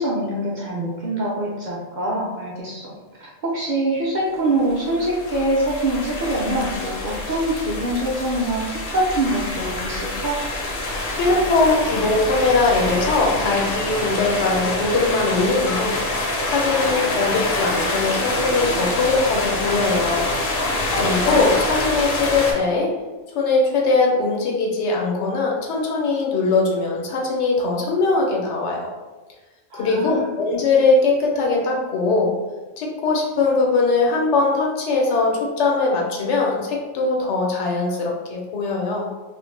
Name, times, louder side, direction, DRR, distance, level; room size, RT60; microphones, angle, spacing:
voice 1, 0.0-2.9 3.2-10.4 20.9-21.4 29.7-30.3, right 1 dB, 55° right, -5 dB, 0.6 m, -24 dB
sound 1, 4.5-22.5, left 2 dB, 65° left, 0.7 m, -26 dB
voice 2, 11.1-16.0 16.5-20.2 21.0-22.9 23.3-28.9 29.7-32.3 32.8-39.1, left 3 dB, 85° left, -1 dB, 0.9 m, -21 dB
2.4 x 2.1 x 3.1 m, 1.2 s
omnidirectional pair, 1.2 m